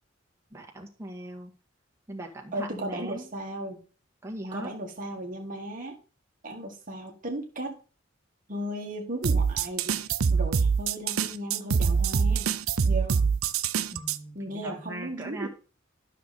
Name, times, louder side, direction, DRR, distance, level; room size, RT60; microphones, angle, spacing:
voice 1, 0.5-1.5 2.1-3.3 4.2-4.7 13.9-15.5, right 1 dB, 15° right, -1 dB, 1.8 m, -39 dB
voice 2, 2.5-3.8 4.5-6.0 6.4-7.8 8.5-12.5 12.8-13.2 14.3-15.5, right 1 dB, 40° right, 2 dB, 1.6 m, -36 dB
sound 1, 9.2-14.2, right 6 dB, 90° right, 0.6 m, -25 dB
12.0 x 6.5 x 4.2 m, 0.38 s
head